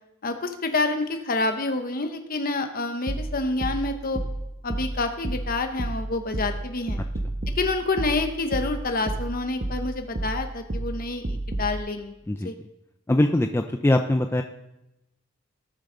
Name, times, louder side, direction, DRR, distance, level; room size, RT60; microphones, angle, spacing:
voice 1, 0.2-4.2 4.6-7.0 7.5-12.1 12.4-12.5, left 3 dB, 45° left, 6 dB, 1.0 m, -28 dB
sound 1, 3.1-11.8, right 1 dB, 50° right, 1.0 m, -31 dB
voice 2, 13.1-14.4, left 1 dB, 10° left, 6 dB, 0.4 m, -22 dB
18.5 x 7.1 x 3.9 m, 0.90 s
head